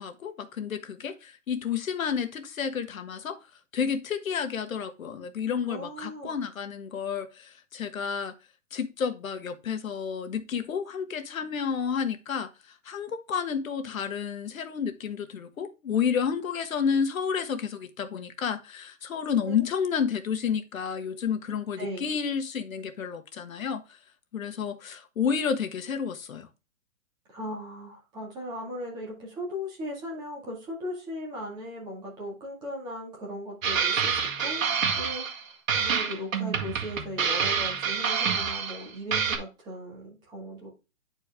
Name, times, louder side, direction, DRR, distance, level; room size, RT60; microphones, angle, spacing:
voice 1, 0.0-3.4 3.7-8.3 8.7-24.0 24.3-26.5, left 7 dB, 80° left, 1.4 m, -30 dB
voice 2, 5.7-6.3 19.4-19.6 21.8-22.0 27.3-40.7, equal, 10° right, 1.9 m, -38 dB
sound 1, 33.6-35.4 35.7-38.8 39.1-39.4, right 6 dB, 75° right, 1.9 m, -27 dB
9.4 x 4.5 x 3.5 m
hypercardioid pair, 175°, 40 cm